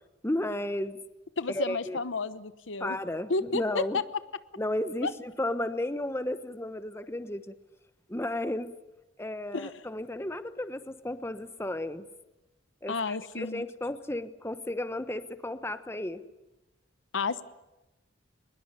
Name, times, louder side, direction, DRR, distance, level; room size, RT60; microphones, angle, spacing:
voice 1, 0.2-1.0 1.5-2.0 2.8-4.0 4.6-7.5 8.1-8.7 9.2-12.0 12.8-16.2, left 1 dB, 15° left, 11 dB, 1.0 m, -33 dB
voice 2, 1.4-3.0 3.3-4.0 5.0-5.1 9.5-9.7 12.9-13.7 17.1-17.4, left 3 dB, 80° left, 14 dB, 1.0 m, -31 dB
23.5 x 20.5 x 9.9 m, 1.0 s
head